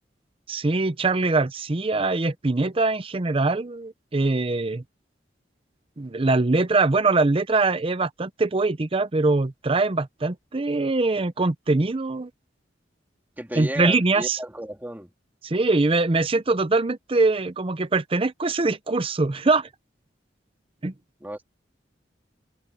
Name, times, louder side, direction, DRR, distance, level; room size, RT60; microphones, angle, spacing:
voice 1, 0.5-4.8 6.0-12.3 13.6-14.4 15.4-19.7 20.8-20.9, right 3 dB, 30° right, 0.6 m, -23 dB
voice 2, 13.4-15.1 21.2-21.4, right 1 dB, 10° right, 2.8 m, -33 dB
head